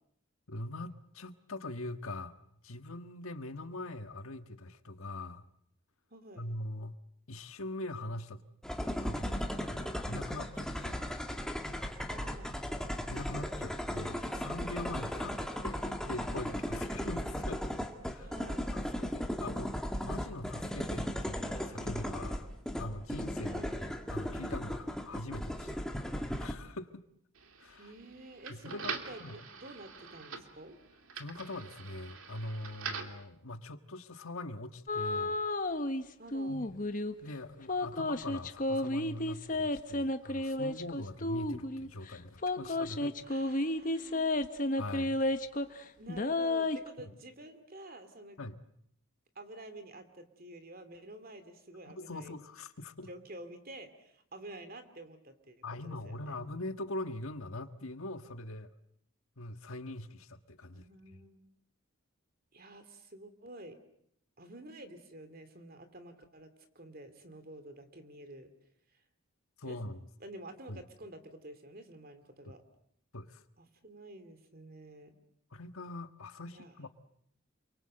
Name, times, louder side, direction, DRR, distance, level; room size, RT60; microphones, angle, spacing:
voice 1, 0.5-2.4 2.6-5.5 6.4-7.0 7.3-8.4 9.0-11.1 13.1-15.3 15.6-17.7 18.1-18.3 18.7-22.5 22.8-23.6 24.1-25.8 26.1-27.0 27.6-27.9 28.5-28.9 29.2-29.4 31.1-35.4 36.5-36.7 37.2-43.2 44.8-45.2 48.4-48.6 52.0-53.1 55.6-58.7 59.4-61.2 69.6-70.0 70.7-70.8 73.1-73.4 75.5-76.9, left 2 dB, 75° left, 9 dB, 1.6 m, -42 dB
voice 2, 6.1-6.5 12.1-12.6 15.1-15.4 18.2-18.7 23.5-23.8 27.8-30.8 36.2-36.6 43.2-44.4 46.0-48.4 49.3-52.4 53.1-56.3 60.7-61.4 62.5-63.8 64.4-68.5 68.9-69.0 69.6-69.8 70.2-72.6 73.6-75.2 76.5-76.8, right 1 dB, 45° right, 9 dB, 2.7 m, -50 dB
sound 1, 8.6-26.5, equal, 5° left, 1.8 m, -36 dB
sound 2, 27.4-33.2, right 5 dB, 70° right, 2.6 m, -44 dB
sound 3, 34.9-36.0 36.3-37.1 37.7-41.9 42.4-45.8 46.1-46.9, left 2 dB, 40° left, 1.2 m, -32 dB
28.5 x 23.5 x 7.8 m, 0.70 s
head